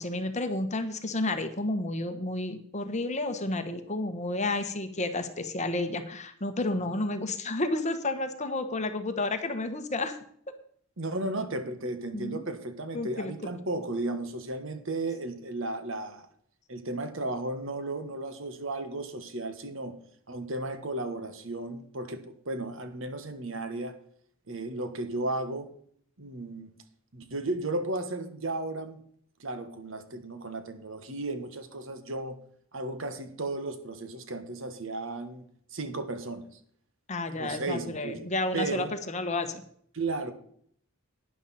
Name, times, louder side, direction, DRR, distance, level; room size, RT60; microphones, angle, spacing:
voice 1, 0.0-10.2 12.1-12.4 12.9-13.3 37.1-39.6, left 2 dB, 35° left, 1.2 m, -31 dB
voice 2, 11.0-16.3 16.7-20.0 20.3-23.9 24.5-25.7 26.2-26.7 27.1-29.0 29.4-32.4 32.7-35.5 35.7-36.5 37.4-38.3 38.5-38.9 39.9-40.3, right 2 dB, 60° right, 1.4 m, -34 dB
12.0 x 10.0 x 4.2 m
head